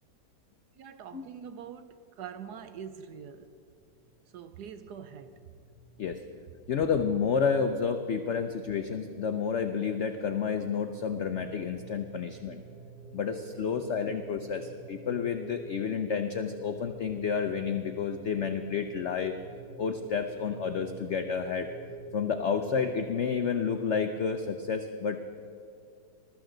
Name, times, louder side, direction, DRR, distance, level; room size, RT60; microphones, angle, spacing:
voice 1, 0.8-3.5 4.3-5.4 14.0-14.1, right 7 dB, 70° right, 11 dB, 1.2 m, -44 dB
sound 1, 3.6-23.0, right 4 dB, 30° right, 1.7 m, -49 dB
voice 2, 6.7-12.6 13.1-19.3 19.8-21.7 22.1-25.2, left 6 dB, 75° left, 7 dB, 0.6 m, -30 dB
20.5 x 13.5 x 3.9 m, 2.5 s
omnidirectional pair, 1.9 m